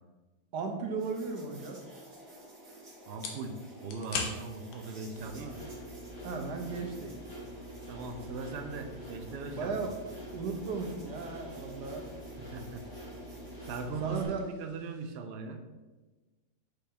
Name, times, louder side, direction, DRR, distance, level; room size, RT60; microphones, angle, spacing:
voice 1, 0.5-1.8 5.4-5.5 6.2-7.1 9.5-9.9 10.3-12.0 14.0-14.4, right 4 dB, 85° right, 3 dB, 1.5 m, -36 dB
sound 1, 1.0-14.3, right 1 dB, 40° right, 1.7 m, -52 dB
sound 2, 2.0-15.2, left 4 dB, 85° left, 1.4 m, -47 dB
voice 2, 3.1-5.6 7.9-9.7 12.4-12.8 13.7-15.6, right 4 dB, 65° right, 5 dB, 0.6 m, -40 dB
sound 3, 5.1-14.4, equal, 60° left, 2.3 m, -45 dB
6.3 x 5.2 x 2.9 m, 1.2 s
omnidirectional pair, 1.7 m